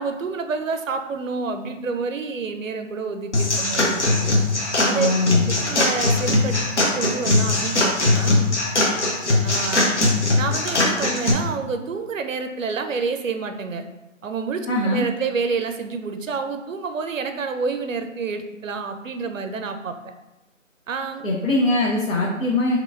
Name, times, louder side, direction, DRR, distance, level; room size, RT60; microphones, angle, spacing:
voice 1, 0.0-4.3 4.8-5.1 5.6-8.5 9.4-9.9 10.4-13.8 14.2-20.0 20.9-21.2, right 4 dB, 75° right, 7 dB, 0.5 m, -28 dB
sound 1, 3.3-11.3, left 2 dB, 60° left, 0.9 m, -20 dB
voice 2, 4.9-5.5 14.7-15.1 21.2-22.8, left 2 dB, 85° left, -4 dB, 0.9 m, -21 dB
3.6 x 3.0 x 2.4 m, 0.97 s
figure-of-eight pair, 160°, 40 cm